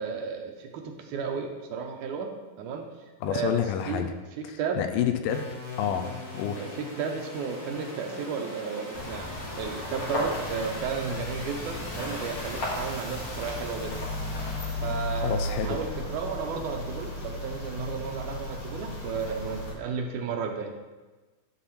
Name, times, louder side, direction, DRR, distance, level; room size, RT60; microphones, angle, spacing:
voice 1, 0.0-2.9 3.3-3.6 3.9-4.1 4.4-4.8 6.6-9.3 9.6-14.0 14.8-20.8, right 5 dB, 75° right, 3 dB, 2.0 m, -33 dB
voice 2, 3.2-4.1 4.4-5.5 5.8-6.7 15.2-15.8, left 9 dB, 85° left, 7 dB, 2.3 m, -29 dB
sound 1, 5.2-15.5, left 2 dB, 30° left, 2.2 m, -42 dB
sound 2, 8.9-19.7, left 1 dB, 50° left, 2.6 m, -34 dB
11.0 x 4.3 x 5.9 m, 1.2 s
omnidirectional pair, 3.9 m